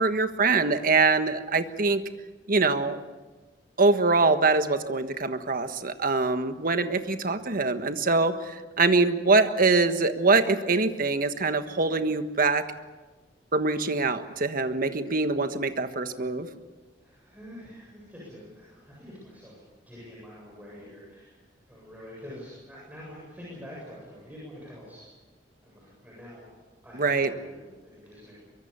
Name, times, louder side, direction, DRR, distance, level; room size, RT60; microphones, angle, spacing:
voice 1, 0.0-2.0 2.5-3.0 3.8-12.6 13.5-16.5 26.9-27.3, right 3 dB, 50° right, 9 dB, 1.4 m, -24 dB
voice 2, 17.0-19.6 19.9-21.3 21.7-25.1 25.6-26.4 26.8-28.4, left 1 dB, 10° right, -6 dB, 7.7 m, -45 dB
24.0 x 23.0 x 7.0 m, 1.3 s
head